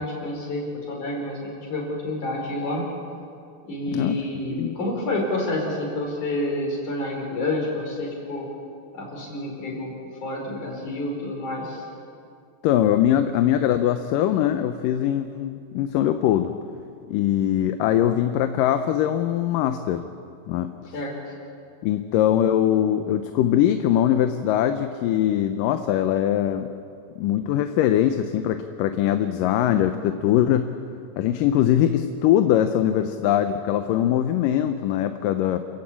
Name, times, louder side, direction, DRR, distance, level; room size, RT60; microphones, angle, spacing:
voice 1, 0.0-2.8 3.6-8.5 8.9-9.9 10.2-11.8 20.9-21.1, left 1 dB, 60° left, -1 dB, 6.2 m, -29 dB
voice 2, 12.6-16.5 17.1-20.0 20.5-20.7 21.8-26.7 27.2-30.7 31.2-35.6, left 11 dB, 80° left, 8 dB, 2.4 m, -22 dB
29.0 x 15.0 x 8.6 m, 2.5 s
omnidirectional pair, 3.9 m